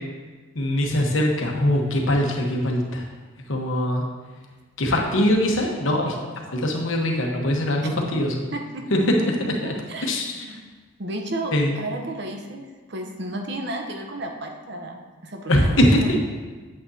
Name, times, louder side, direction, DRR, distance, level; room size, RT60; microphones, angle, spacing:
voice 1, 0.5-3.0 3.5-4.0 4.8-6.2 6.5-8.5 8.9-9.3 9.6-9.7 10.0-10.6 11.5-11.8 15.5-16.0, left 1 dB, 70° left, 0 dB, 1.1 m, -22 dB
voice 2, 8.5-9.0 9.4-10.1 10.4-10.6 11.0-16.1, right 1 dB, 50° right, 3 dB, 0.8 m, -33 dB
8.7 x 7.7 x 2.8 m, 1.4 s
head